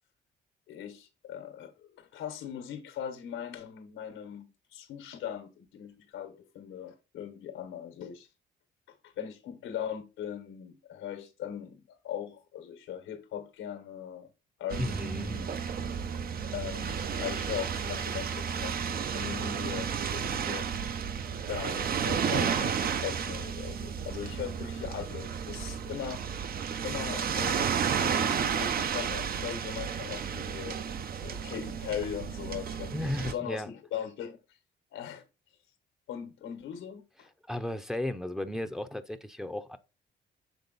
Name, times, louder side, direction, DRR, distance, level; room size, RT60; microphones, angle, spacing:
voice 1, 0.7-8.3 9.0-14.3 14.6-15.5 16.5-20.7 21.5-26.5 26.8-27.7 28.0-30.8 31.2-34.4 34.9-35.2 36.1-37.3, left 9 dB, 90° left, 1.2 m, -39 dB
sound 1, 14.7-33.3, right 7 dB, 50° right, 0.6 m, -32 dB
voice 2, 14.8-15.4 32.9-33.7 37.5-39.8, left 1 dB, ahead, 0.6 m, -34 dB
7.0 x 3.6 x 4.0 m
cardioid pair, 90°, 20 cm